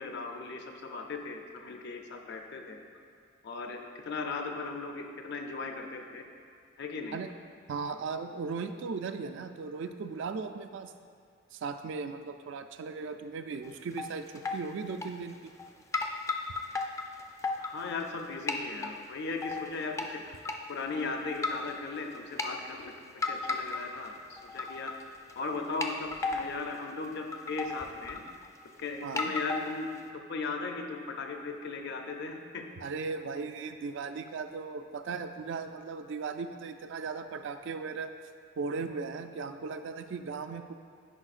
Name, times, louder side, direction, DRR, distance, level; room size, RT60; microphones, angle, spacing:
voice 1, 0.0-2.8 3.4-6.2 6.8-7.2 17.6-24.9 25.4-28.2 28.8-29.9 30.3-32.7, left 4 dB, 60° left, 4 dB, 0.6 m, -37 dB
voice 2, 7.7-10.9 11.5-15.5 29.0-29.3 32.8-38.1 38.6-40.7, right 4 dB, 65° right, 8 dB, 0.3 m, -37 dB
sound 1, 13.6-14.1 14.4-14.6 15.0-15.7 15.9-18.2 18.5-18.9 19.4-20.1 20.5-20.6 21.3-21.7 22.2-22.5 23.2-24.1 24.4-25.0 25.3-25.4 25.8-26.6 27.0-27.1 27.3-28.6 29.2-30.0, left 3 dB, 15° left, 0.3 m, -34 dB
9.9 x 4.8 x 2.5 m, 2.3 s
head